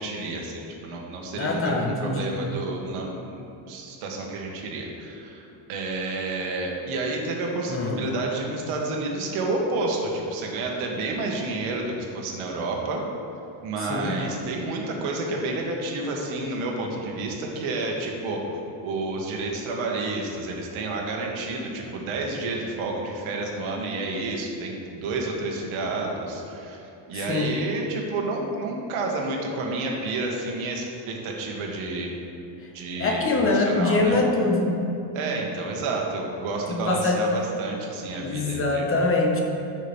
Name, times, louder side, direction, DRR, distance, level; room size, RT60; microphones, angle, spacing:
voice 1, 0.0-3.4 3.7-13.0 13.6-18.6 18.8-32.1 32.7-34.2 35.1-38.8, right 2 dB, 85° right, 0 dB, 1.8 m, -30 dB
voice 2, 1.3-2.3 7.7-8.1 13.9-14.2 27.1-27.5 32.6-32.7 33.0-34.7 36.7-37.2 38.2-39.4, left 2 dB, 25° left, 0 dB, 1.2 m, -24 dB
14.5 x 6.4 x 3.6 m, 2.9 s
cardioid pair, 155°, 48 cm